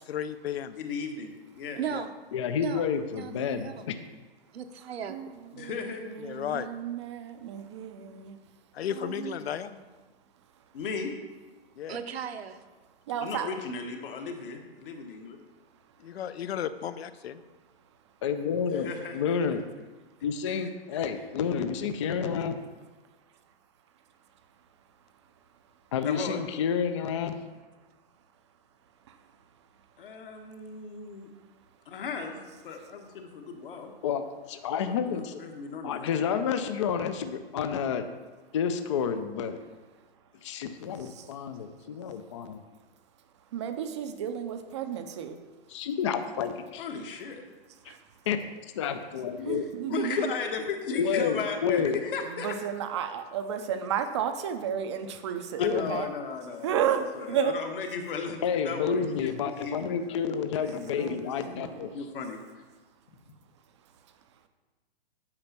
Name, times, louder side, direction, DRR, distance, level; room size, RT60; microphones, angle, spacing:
voice 1, 0.1-0.7 1.9-2.0 6.2-6.7 8.7-9.7 11.8-12.0 16.0-17.3, left 9 dB, 75° left, 13 dB, 0.7 m, -34 dB
voice 2, 0.8-1.8 5.5-6.2 9.0-9.3 10.7-11.1 13.2-15.4 18.7-19.3 20.4-20.6 20.9-21.1 26.0-26.4 30.0-31.3 31.9-33.9 34.8-36.1 46.8-47.4 49.9-52.5 55.6-61.0 61.9-62.4, left 5 dB, 55° left, 4 dB, 1.4 m, -36 dB
voice 3, 1.8-2.1 2.6-2.9 3.2-3.8 4.5-5.2 11.9-12.6, right 8 dB, 75° right, 8 dB, 0.9 m, -36 dB
voice 4, 2.3-3.7 18.2-19.6 20.2-22.6 25.9-27.4 34.0-35.4 35.8-38.1 38.5-39.6 40.4-42.5 45.7-46.9 48.3-48.4 48.7-49.6 50.9-52.0 55.6-56.0 58.4-61.9, left 7 dB, 30° left, 9 dB, 0.4 m, -29 dB
voice 5, 6.1-7.9 8.3-8.4 9.0-9.6 13.1-13.5 41.2-41.3 43.5-45.3 47.9-48.0 49.5-50.3 52.4-56.1 56.6-57.5 61.0-61.2 61.4-61.6, right 8 dB, 30° right, 8 dB, 0.5 m, -32 dB
8.8 x 5.1 x 5.9 m, 1.3 s
hypercardioid pair, 160°, 32 cm